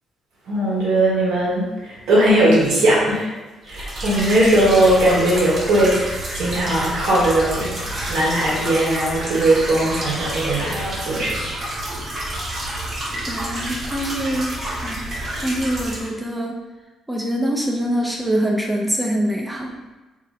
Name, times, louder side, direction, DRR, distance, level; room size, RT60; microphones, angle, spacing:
voice 1, 0.5-1.6 2.1-3.3 3.7-7.8 8.1-11.4, right 1 dB, 80° right, -6 dB, 1.1 m, -18 dB
sound 1, 3.7-16.1, right 1 dB, 50° right, 1.1 m, -29 dB
voice 2, 13.3-14.5 14.8-15.1 15.4-16.6 17.1-19.7, right 1 dB, 5° right, -1 dB, 0.4 m, -24 dB
2.7 x 2.1 x 3.6 m, 1.2 s
cardioid pair, 90°, 0 cm